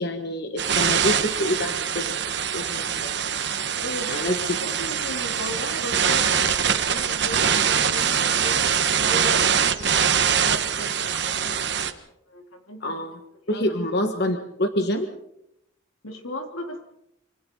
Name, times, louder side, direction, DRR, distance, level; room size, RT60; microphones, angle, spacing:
voice 1, 0.0-2.2 2.5-3.4 4.1-4.4 12.8-13.2 13.5-15.1, left 1 dB, 55° left, 6 dB, 1.5 m, -27 dB
sound 1, 0.6-11.9, right 7 dB, 55° right, 1.3 m, -23 dB
voice 2, 3.8-12.0 12.3-13.0 13.4-13.6 16.0-16.9, left 1 dB, 90° left, 3 dB, 3.4 m, -36 dB
27.0 x 25.5 x 3.9 m, 0.79 s
head